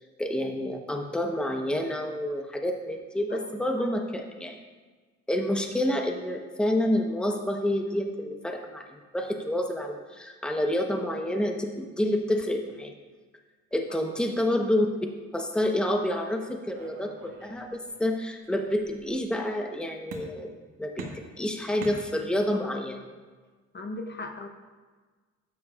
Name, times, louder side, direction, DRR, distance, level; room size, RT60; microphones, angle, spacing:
voice 1, 0.2-4.6 5.3-12.9 13.7-14.9 15.3-20.5 20.8-23.0, left 1 dB, 5° left, 3 dB, 0.9 m, -28 dB
sound 1, 16.7-18.1 18.4-19.2 20.1-20.6 21.0-22.6, right 3 dB, 85° right, 1.4 m, -43 dB
voice 2, 23.7-24.5, left 2 dB, 35° left, 4 dB, 0.9 m, -38 dB
12.0 x 9.4 x 2.4 m, 1.4 s
cardioid pair, 90°, 30 cm